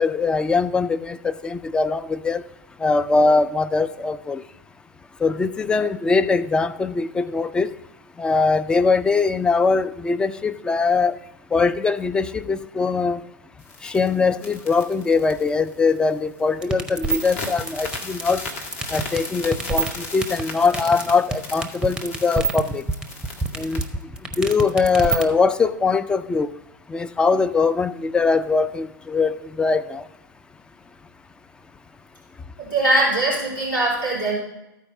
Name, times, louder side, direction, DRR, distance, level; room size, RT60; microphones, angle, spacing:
voice 1, 0.0-2.4 2.8-4.4 5.2-7.7 8.2-11.1 11.5-13.2 13.8-18.4 18.9-22.8 23.6-23.8 24.4-26.5 26.9-30.1, left 4 dB, 10° left, 11 dB, 0.3 m, -21 dB
sound 1, 13.6-16.1 16.4-16.6 17.0-23.9, left 3 dB, 45° left, 1.6 m, -36 dB
sound 2, 16.6-25.2, right 4 dB, 5° right, 0.7 m, -25 dB
voice 2, 32.6-34.3, right 2 dB, 80° left, -5 dB, 3.1 m, -21 dB
13.5 x 4.6 x 5.0 m, 0.91 s
figure-of-eight pair, 95°, 11 cm